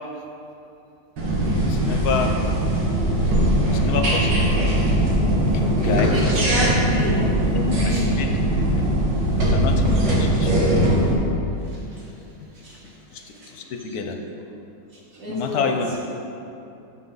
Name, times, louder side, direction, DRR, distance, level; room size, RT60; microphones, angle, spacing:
sound 1, 1.2-11.1, right 1 dB, 80° right, 2.3 m, -20 dB
voice 1, 1.6-2.4 3.7-4.5 5.5-6.1 7.2-8.5 9.4-10.5 13.1-13.2 13.5-14.2 15.3-16.0, left 5 dB, 65° left, 4 dB, 1.2 m, -28 dB
voice 2, 6.0-7.3 7.9-8.1 9.3-9.4 11.6-12.1 12.5-14.0 14.9-15.7, equal, 50° right, -5 dB, 2.1 m, -32 dB
13.5 x 6.0 x 3.9 m, 2.8 s
omnidirectional pair, 1.9 m